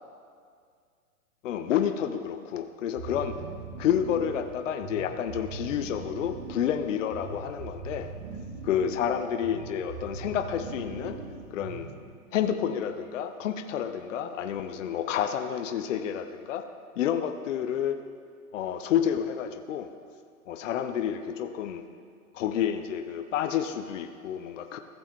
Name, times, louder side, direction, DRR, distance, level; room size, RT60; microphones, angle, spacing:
voice 1, 1.4-3.3 3.8-8.1 8.6-11.2 11.5-11.9 12.3-16.6 17.0-18.0 18.5-19.9 20.5-21.8 22.3-24.8, left 9 dB, 60° left, 7 dB, 0.7 m, -29 dB
sound 1, 3.0-12.2, right 4 dB, 25° right, 0.6 m, -41 dB
15.0 x 7.0 x 3.0 m, 2.1 s
hypercardioid pair, 145°, 44 cm